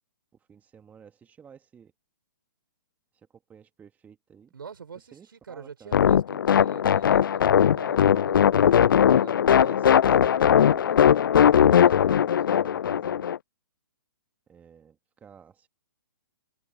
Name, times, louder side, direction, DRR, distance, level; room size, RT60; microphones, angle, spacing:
voice 1, 0.5-1.9 3.1-4.5 5.0-5.9 8.1-13.3 14.5-15.7, right 7 dB, 15° right, 2.0 m, -51 dB
voice 2, 4.5-9.4, right 6 dB, 75° right, 4.9 m, -45 dB
sound 1, 5.9-13.4, left 9 dB, 70° left, 0.4 m, -19 dB
hypercardioid pair, 130°, 12 cm